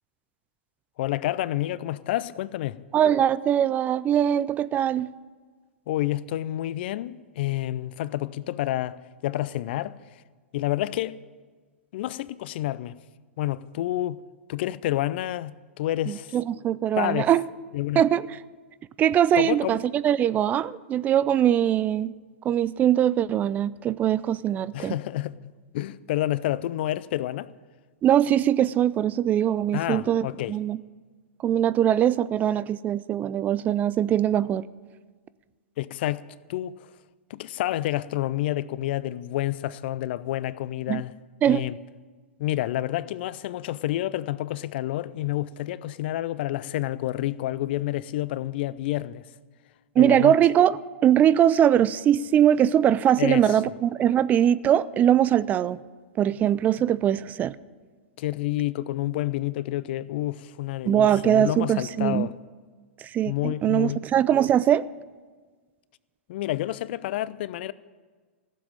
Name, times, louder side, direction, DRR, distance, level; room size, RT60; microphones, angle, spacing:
voice 1, 1.0-2.8 5.9-10.0 10.5-11.2 11.9-13.0 13.4-14.2 14.5-16.4 17.0-17.3 17.7-18.0 19.4-19.8 24.7-25.4 25.7-27.5 29.7-30.6 35.8-36.2 36.5-36.9 37.3-41.1 41.5-41.8 42.4-49.2 50.0-50.3 53.2-53.5 58.2-62.3 63.3-64.0 66.3-67.7, left 14 dB, 55° left, 0.5 m, -29 dB
voice 2, 2.9-5.1 16.1-17.4 18.0-18.3 19.0-22.1 22.4-25.0 28.0-30.8 31.4-34.7 40.9-41.0 41.4-41.7 50.0-55.8 56.2-57.6 60.9-62.3 63.0-64.9, right 10 dB, 25° right, 0.4 m, -22 dB
15.5 x 7.5 x 9.0 m
hypercardioid pair, 115°, 7 cm